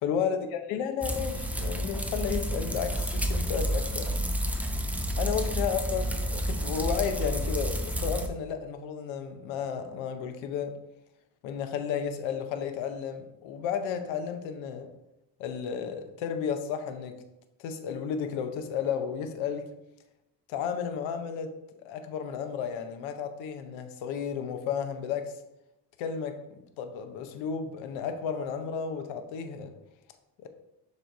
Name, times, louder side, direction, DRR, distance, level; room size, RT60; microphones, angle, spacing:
voice 1, 0.0-4.1 5.2-10.8 11.4-14.9 15.4-17.2 17.6-19.6 20.5-21.5 21.8-25.3 26.0-26.4 26.8-29.7 30.4-30.5, left 7 dB, 85° left, 0.8 m, -33 dB
sound 1, 1.0-8.3, equal, 5° right, 0.3 m, -30 dB
6.5 x 3.3 x 4.5 m
cardioid pair, 120°, 45 cm